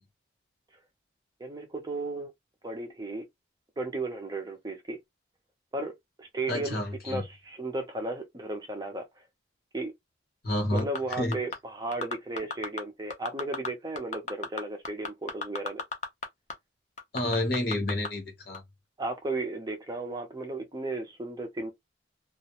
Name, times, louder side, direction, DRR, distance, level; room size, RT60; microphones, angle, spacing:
voice 1, 1.4-2.3 2.6-3.2 3.8-5.0 5.7-5.9 6.2-6.8 7.0-9.0 9.7-9.9 10.7-15.8 19.0-21.7, right 2 dB, 20° right, 0.4 m, -34 dB
voice 2, 6.5-7.2 10.4-10.9 11.2-11.4 17.1-18.6, left 1 dB, 55° left, 0.9 m, -29 dB
sound 1, 10.8-11.6 11.9-12.8 13.1-13.7 14.0-16.3 16.5-16.6 17.0-18.1 18.5-18.6, left 4 dB, 40° left, 0.6 m, -33 dB
2.3 x 2.0 x 2.8 m
head